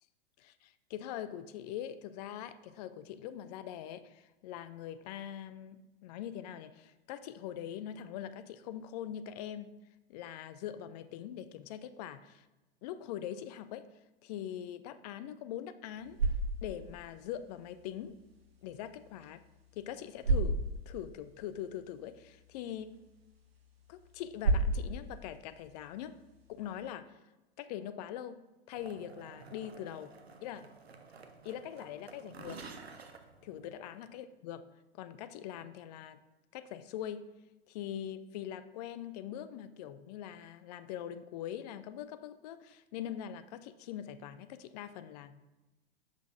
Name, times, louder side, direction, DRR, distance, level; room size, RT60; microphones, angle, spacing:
voice 1, 0.4-9.7 10.1-12.4 12.8-13.9 14.2-16.2 16.6-18.2 18.6-19.4 19.7-23.0 23.9-26.2 26.5-27.2 27.6-28.4 28.7-30.1 30.4-30.7 31.4-32.6 33.4-34.7 34.9-36.2 36.5-37.3 37.7-45.4, left 10 dB, 45° left, 13 dB, 0.4 m, -42 dB
sound 1, 15.8-26.9, right 2 dB, 70° right, 1.1 m, -37 dB
sound 2, 28.7-34.1, right 4 dB, 90° right, 0.6 m, -51 dB
7.3 x 5.6 x 2.6 m, 1.1 s
figure-of-eight pair, 95°, 30 cm